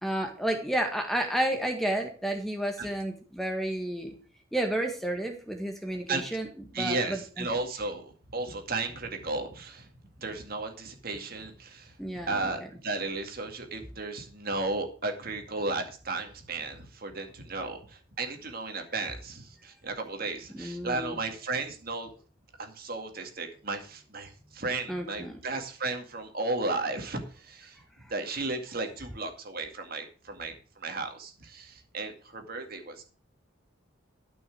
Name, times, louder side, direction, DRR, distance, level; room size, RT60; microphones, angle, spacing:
voice 1, 0.0-4.1 4.5-6.5 6.7-7.5 12.0-12.5 20.5-21.2 24.9-25.3, right 1 dB, ahead, 3 dB, 1.7 m, -31 dB
voice 2, 6.7-9.9 10.2-11.9 12.2-22.1 22.6-27.8 28.1-33.0, right 3 dB, 45° right, 4 dB, 2.2 m, -34 dB
13.0 x 6.3 x 6.2 m, 0.38 s
head